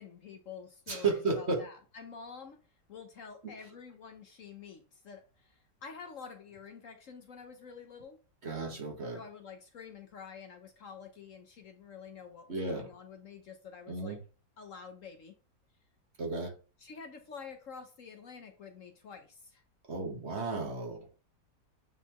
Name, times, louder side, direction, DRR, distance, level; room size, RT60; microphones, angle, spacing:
voice 1, 0.0-2.6 2.9-8.2 9.1-14.2 14.6-15.4 16.8-19.6, left 6 dB, 55° left, 1.1 m, -48 dB
voice 2, 0.9-1.6 8.4-9.2 12.5-12.9 13.9-14.2 16.2-16.6 19.9-21.1, right 3 dB, 40° right, 1.5 m, -33 dB
9.2 x 4.1 x 3.0 m
omnidirectional pair, 1.8 m